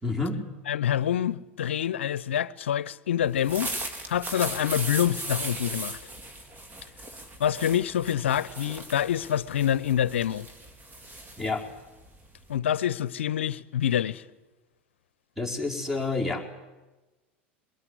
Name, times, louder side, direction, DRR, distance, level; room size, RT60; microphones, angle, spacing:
voice 1, 0.0-0.4 11.4-11.6 15.4-16.4, left 3 dB, 5° right, 4.9 m, -28 dB
voice 2, 0.7-3.7 4.1-6.0 7.4-10.5 12.5-14.2, left 10 dB, 80° left, 0.7 m, -26 dB
sound 1, 3.3-12.6, right 2 dB, 30° right, 3.8 m, -38 dB
23.0 x 21.0 x 9.7 m
hypercardioid pair, 85°, 6 cm